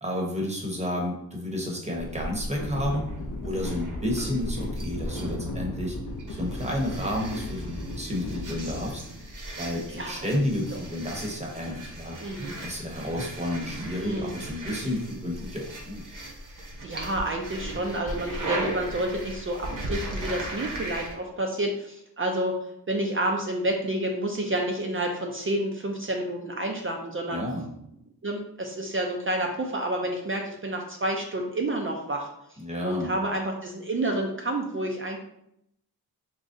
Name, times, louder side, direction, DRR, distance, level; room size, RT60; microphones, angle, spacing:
voice 1, 0.0-3.1 3.4-6.0 6.3-9.0 9.6-12.2 12.6-16.0 27.3-27.7 32.6-33.1, left 1 dB, 15° right, -1 dB, 0.8 m, -31 dB
sound 1, 2.0-21.1, right 1 dB, 55° right, 0.9 m, -37 dB
sound 2, 2.6-8.9, left 2 dB, 50° left, 0.5 m, -37 dB
Thunder, 3.0-14.7, right 2 dB, 85° right, 1.0 m, -46 dB
voice 2, 9.9-10.3 10.7-10.8 12.2-12.5 14.0-14.3 16.8-22.6 22.9-27.4 28.2-32.6 32.8-35.2, right 1 dB, 35° right, 1 dB, 0.4 m, -29 dB
3.7 x 3.0 x 2.6 m, 0.78 s
wide cardioid pair, 100°, 39 cm